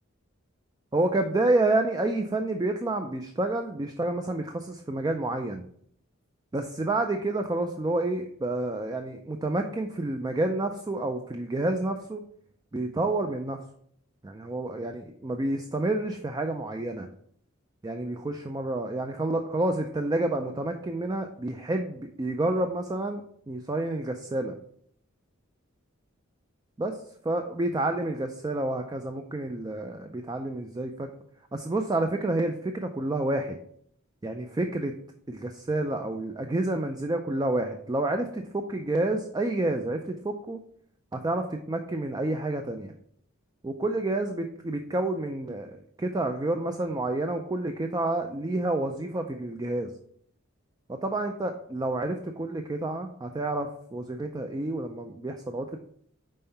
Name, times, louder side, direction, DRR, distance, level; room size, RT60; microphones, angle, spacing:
voice 1, 0.9-5.6 6.5-12.2 12.7-13.6 14.2-17.1 17.8-24.5 26.8-27.0 27.2-31.1 31.5-33.6 34.2-35.0 35.3-40.6 41.1-42.9 43.6-49.9 50.9-55.8, right 2 dB, 20° right, 5 dB, 0.4 m, -29 dB
5.5 x 4.3 x 5.5 m, 0.66 s
head